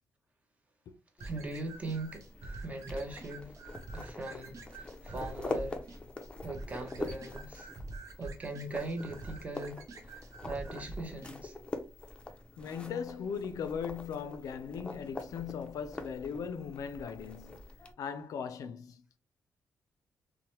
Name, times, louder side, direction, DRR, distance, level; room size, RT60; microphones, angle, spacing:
sound 1, 1.2-17.9, left 2 dB, 15° left, 0.4 m, -44 dB
voice 1, 1.2-3.6 3.9-5.8 6.4-7.7 8.2-11.6, right 2 dB, 25° right, 0.7 m, -40 dB
sound 2, 1.2-11.3, right 2 dB, 65° right, 0.6 m, -46 dB
voice 2, 12.6-17.7 18.0-19.0, left 7 dB, 75° left, 0.4 m, -38 dB
2.8 x 2.1 x 2.9 m
cardioid pair, 125°, 6 cm